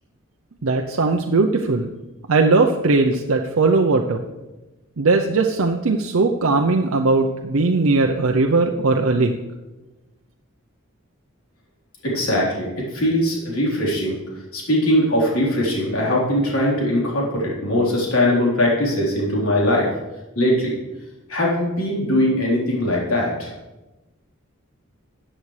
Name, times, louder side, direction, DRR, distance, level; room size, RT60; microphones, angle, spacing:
voice 1, 0.6-1.9 2.3-4.2 5.0-9.3, right 3 dB, 80° right, 3 dB, 0.6 m, -19 dB
voice 2, 12.0-14.2 14.5-19.9 20.4-20.8 21.3-23.5, left 1 dB, 85° left, -4 dB, 3.8 m, -20 dB
14.0 x 8.7 x 3.3 m, 1.1 s
head